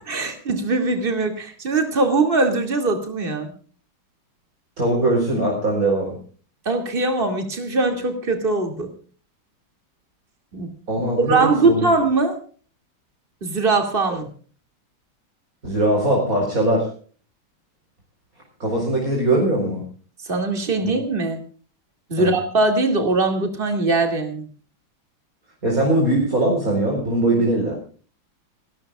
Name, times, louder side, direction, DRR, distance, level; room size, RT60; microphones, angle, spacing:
voice 1, 0.1-3.5 6.7-8.9 10.5-10.7 11.2-12.4 13.4-14.3 20.3-21.4 22.1-24.5, right 3 dB, 25° right, 5 dB, 2.7 m, -21 dB
voice 2, 4.8-6.2 10.9-11.8 15.6-16.9 18.6-19.8 20.8-20.9 22.2-22.3 25.6-27.7, right 1 dB, 45° right, -1 dB, 4.8 m, -21 dB
30.0 x 12.5 x 2.4 m, 0.41 s
omnidirectional pair, 2.2 m